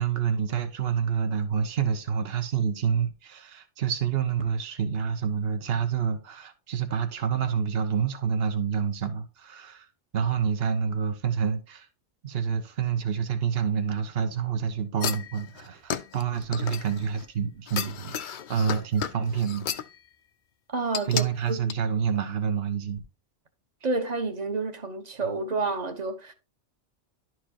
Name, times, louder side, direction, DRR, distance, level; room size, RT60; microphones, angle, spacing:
voice 1, 0.0-9.9 10.1-11.9 12.2-19.7 21.1-23.0, right 7 dB, 60° right, 1.2 m, -28 dB
sound 1, 15.0-17.2 17.7-19.9 20.9-21.3 21.7-21.8, left 8 dB, 55° left, 0.6 m, -33 dB
voice 2, 20.7-21.6 23.8-26.3, right 3 dB, 40° right, 1.2 m, -29 dB
11.5 x 4.6 x 2.9 m
omnidirectional pair, 1.2 m